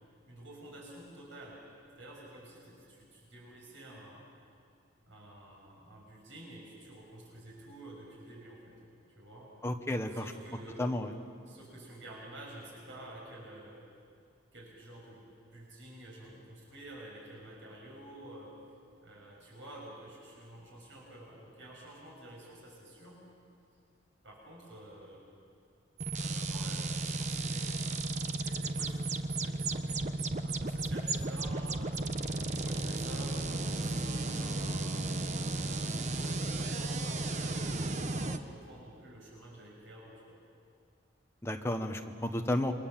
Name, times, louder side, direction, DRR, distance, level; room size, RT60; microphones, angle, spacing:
voice 1, 0.3-1.6 2.0-4.2 5.1-8.8 9.2-9.5 10.1-11.0 11.4-13.8 14.5-15.2 15.5-18.6 19.0-23.2 24.2-25.2 26.1-30.0 30.4-32.1 32.5-35.0 35.5-40.4, right 1 dB, 80° right, -3 dB, 6.7 m, -50 dB
voice 2, 9.6-10.2 10.8-11.1 41.4-42.7, left 1 dB, 15° left, 5 dB, 1.2 m, -32 dB
sound 1, 26.0-38.4, right 2 dB, 40° right, 1.0 m, -34 dB
28.5 x 24.0 x 7.4 m, 2.3 s
head